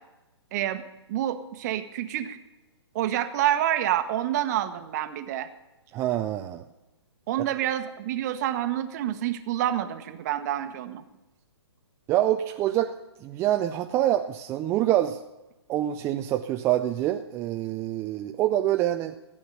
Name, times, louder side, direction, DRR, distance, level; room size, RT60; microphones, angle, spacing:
voice 1, 0.5-0.8 1.1-2.4 2.9-5.5 7.3-11.0, right 12 dB, 40° right, 9 dB, 1.1 m, -28 dB
voice 2, 5.9-6.6 7.4-7.5 12.1-12.9 13.2-15.2 15.7-19.2, right 13 dB, 20° right, 5 dB, 0.4 m, -26 dB
15.0 x 8.6 x 6.7 m, 1.0 s
figure-of-eight pair, 130°, 14 cm